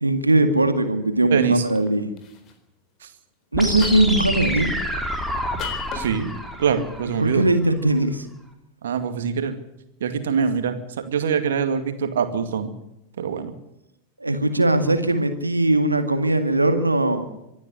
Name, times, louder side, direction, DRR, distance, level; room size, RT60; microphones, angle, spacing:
voice 1, 0.0-2.1 3.5-4.7 7.2-8.3 14.2-17.2, right 2 dB, 85° right, 8 dB, 2.0 m, -20 dB
voice 2, 1.3-1.6 5.9-6.3 6.6-7.4 8.8-9.6 10.0-10.8 11.1-12.7 13.2-13.5, right 6 dB, 60° right, 9 dB, 2.2 m, -23 dB
sound 1, 1.7-1.9 2.2-2.5 3.8-4.3 5.6-6.1, left 7 dB, 35° left, 3.9 m, -34 dB
sound 2, 3.5-7.5, equal, ahead, 3.3 m, -28 dB
25.5 x 11.0 x 9.6 m, 0.86 s
figure-of-eight pair, 90°, 0 cm